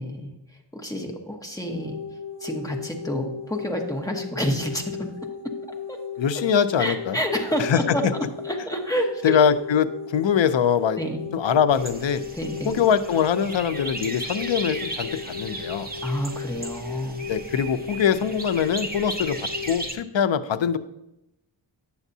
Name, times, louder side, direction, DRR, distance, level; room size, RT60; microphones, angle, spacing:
voice 1, 0.0-2.0 2.4-5.1 5.4-5.6 5.9-6.0 6.3-6.4 6.8-8.1 8.4-9.4 11.0-11.2 12.3-12.7 16.0-17.3, equal, 5° left, 1 dB, 1.1 m, -29 dB
sound 1, 1.7-19.7, left 6 dB, 50° left, 1.6 m, -37 dB
voice 2, 6.2-7.2 7.6-7.8 9.2-11.0 11.3-12.2 12.7-15.9 17.3-19.4 19.7-20.8, left 7 dB, 70° left, 11 dB, 0.6 m, -22 dB
sound 2, 11.7-19.9, right 1 dB, 20° right, 0.9 m, -36 dB
9.9 x 7.0 x 2.7 m, 0.87 s
wide cardioid pair, 115°, 46 cm